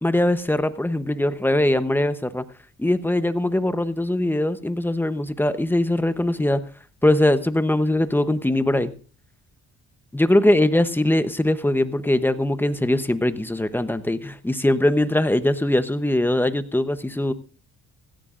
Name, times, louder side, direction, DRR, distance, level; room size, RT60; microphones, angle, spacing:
voice 1, 0.0-2.4 2.8-6.6 7.0-8.9 10.1-17.3, left 1 dB, 5° left, 12 dB, 0.9 m, -21 dB
17.0 x 14.5 x 2.5 m, 0.39 s
cardioid pair, 90°, 30 cm